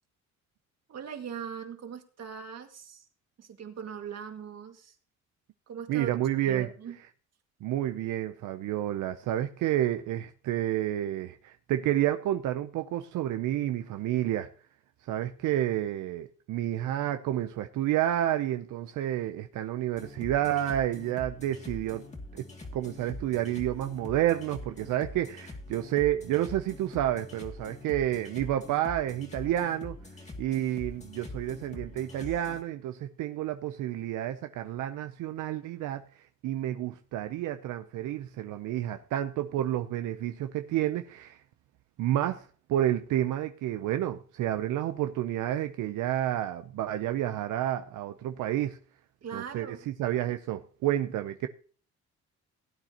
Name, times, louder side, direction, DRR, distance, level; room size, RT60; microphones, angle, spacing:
voice 1, 0.9-3.1 3.4-5.0 5.7-6.1 6.4-7.0 49.2-49.8, right 7 dB, 55° right, 2.1 m, -40 dB
voice 2, 5.9-6.7 7.6-14.5 15.1-22.1 22.3-30.0 30.4-41.4 42.0-48.8 49.3-49.7 50.0-51.5, right 12 dB, 85° right, 0.7 m, -30 dB
sound 1, 20.0-32.6, left 2 dB, 25° left, 2.3 m, -44 dB
17.5 x 9.1 x 2.9 m
cardioid pair, 90°, 30 cm